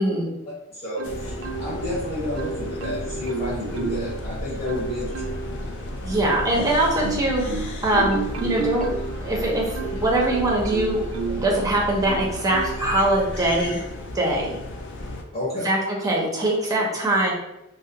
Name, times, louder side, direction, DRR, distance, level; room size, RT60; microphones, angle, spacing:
voice 1, 0.5-5.4 15.3-15.7, left 1 dB, 30° left, -8 dB, 0.9 m, -30 dB
sound 1, 1.0-15.2, left 1 dB, 55° left, 0.4 m, -33 dB
Marimba xylophone, 1.0-1.9 2.4-4.2 4.7-5.6 6.1-11.5 12.0-12.9 13.5-13.7, right 5 dB, 75° right, 0.3 m, -32 dB
voice 2, 6.0-8.8 9.2-11.0 11.4-13.8 14.1-14.6 15.6-17.3, right 1 dB, 15° right, -2 dB, 0.6 m, -22 dB
2.3 x 2.1 x 2.8 m, 0.91 s
head